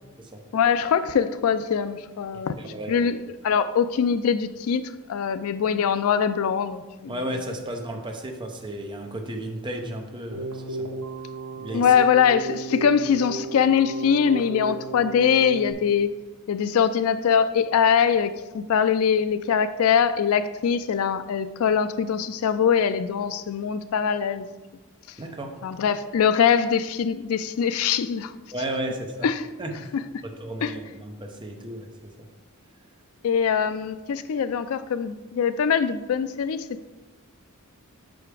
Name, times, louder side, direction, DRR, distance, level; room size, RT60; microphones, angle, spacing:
voice 1, 0.5-2.5 2.9-3.2 3.4-7.2 11.7-16.1 16.5-24.5 25.1-25.2 25.6-28.3 29.2-29.5 30.6-30.7 33.2-36.7, left 7 dB, 65° left, 13 dB, 0.3 m, -22 dB
voice 2, 2.6-3.1 7.1-10.9 11.6-11.9 25.2-25.6 28.5-29.3 29.6-29.9 30.2-32.3, right 1 dB, 20° right, 3 dB, 0.7 m, -34 dB
Keyboard (musical), 10.3-15.7, right 3 dB, 70° right, 1.0 m, -34 dB
5.7 x 5.0 x 4.8 m, 1.2 s
head